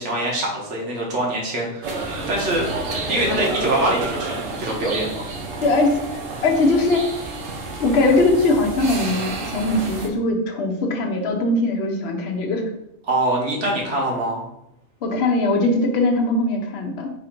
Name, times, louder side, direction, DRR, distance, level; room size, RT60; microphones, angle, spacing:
voice 1, 0.0-2.7 3.1-5.3 13.0-14.5, right 1 dB, 65° right, -1 dB, 1.4 m, -24 dB
sound 1, 1.8-10.1, right 3 dB, 85° right, 1.2 m, -30 dB
voice 2, 5.6-7.1 7.8-12.6 15.0-17.1, left 2 dB, 60° left, 2 dB, 0.9 m, -20 dB
4.1 x 2.6 x 4.4 m, 0.78 s
omnidirectional pair, 1.3 m